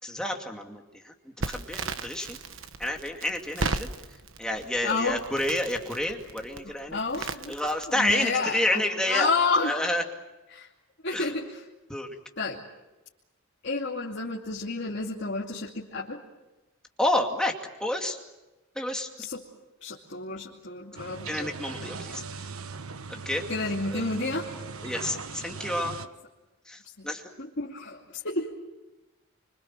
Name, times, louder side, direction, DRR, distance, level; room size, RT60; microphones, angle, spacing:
voice 1, 0.0-2.4 2.8-3.9 4.4-9.3 9.6-10.0 11.1-11.3 11.9-12.1 17.0-17.5 17.8-18.2 18.8-19.1 21.3-22.5 23.3-23.4 23.9-24.1 24.8-26.0 26.7-27.3, left 1 dB, 5° left, 1 dB, 2.4 m, -29 dB
Crackle, 1.4-8.2, right 3 dB, 65° right, 1.2 m, -36 dB
voice 2, 4.8-5.2 6.9-7.5 7.9-8.8 9.1-9.7 10.5-10.7 11.0-11.6 12.4-12.6 13.6-16.2 19.2-19.4 19.8-21.5 21.8-21.9 23.5-24.5 27.0-27.1 27.4-28.6, left 3 dB, 55° left, -4 dB, 2.6 m, -30 dB
sound 1, 20.9-26.1, right 4 dB, 85° right, 1.2 m, -39 dB
26.0 x 25.0 x 7.6 m, 1.0 s
head